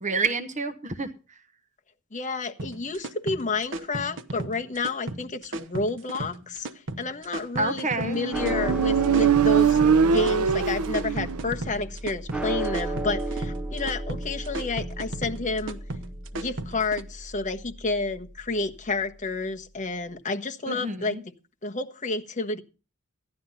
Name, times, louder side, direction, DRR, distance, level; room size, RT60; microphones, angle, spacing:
voice 1, 0.0-1.4 7.6-8.2 20.7-21.2, right 3 dB, 35° right, 10 dB, 1.0 m, -29 dB
voice 2, 2.1-6.7 7.0-15.8 16.3-21.2 21.6-22.6, left 3 dB, 35° left, 5 dB, 1.3 m, -30 dB
sound 1, 2.6-17.0, right 2 dB, 60° right, 1.0 m, -35 dB
Motorcycle, 8.0-11.6, right 7 dB, 80° right, 0.6 m, -22 dB
sound 2, 8.3-18.7, right 1 dB, 5° right, 1.0 m, -34 dB
15.5 x 11.5 x 4.0 m, 0.34 s
head